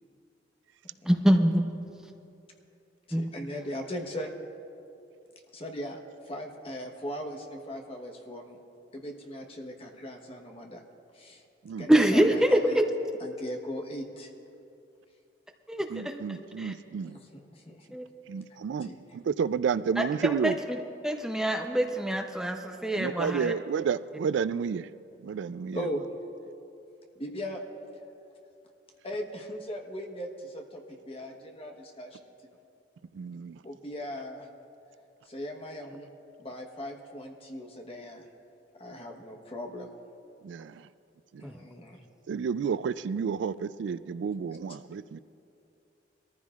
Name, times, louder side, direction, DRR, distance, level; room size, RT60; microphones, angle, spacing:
voice 1, 1.1-1.6 3.1-3.3 11.9-12.9 15.7-16.1 16.6-16.7 17.9-18.0 20.0-23.5 41.4-41.5, right 1 dB, 5° right, 3 dB, 0.6 m, -25 dB
voice 2, 3.1-4.3 5.5-6.0 6.3-8.6 8.9-10.8 11.1-11.4 11.8-12.8 13.2-14.3 17.0-18.0 18.8-19.0 25.7-26.1 27.2-27.6 29.0-32.5 33.6-34.5 35.3-36.1 36.4-38.3 38.8-39.9 41.4-42.0 44.5-44.6, equal, 30° left, 2 dB, 1.1 m, -39 dB
voice 3, 15.9-17.2 18.3-18.9 19.1-20.6 22.9-24.9 25.2-25.9 33.1-33.6 40.4-40.8 42.3-45.2, right 6 dB, 75° right, 16 dB, 0.3 m, -31 dB
22.0 x 14.5 x 2.4 m, 2.7 s
head